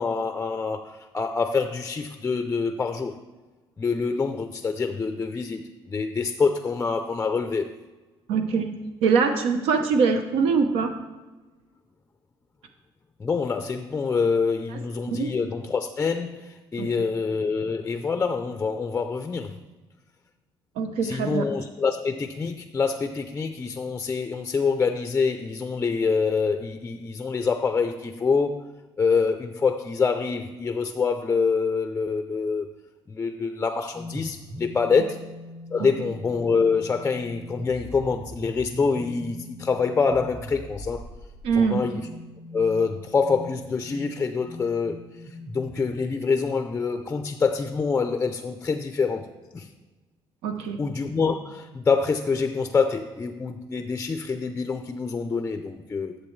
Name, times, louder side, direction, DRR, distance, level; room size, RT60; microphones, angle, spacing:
voice 1, 0.0-3.1 3.8-5.6 5.9-7.7 13.2-19.6 21.0-28.7 29.0-32.7 33.1-35.2 35.7-41.1 41.6-42.1 42.5-45.0 45.5-49.3 49.5-49.7 50.8-56.2, left 5 dB, 20° left, 7 dB, 0.4 m, -26 dB
voice 2, 8.3-8.7 9.0-10.9 15.1-15.3 16.8-17.0 20.8-21.4 41.4-41.8 50.4-50.8, right 5 dB, 90° right, 6 dB, 0.8 m, -23 dB
sound 1, 33.9-46.8, left 1 dB, 15° right, 1.0 m, -42 dB
12.0 x 7.5 x 3.2 m, 1.2 s
cardioid pair, 155°, 10 cm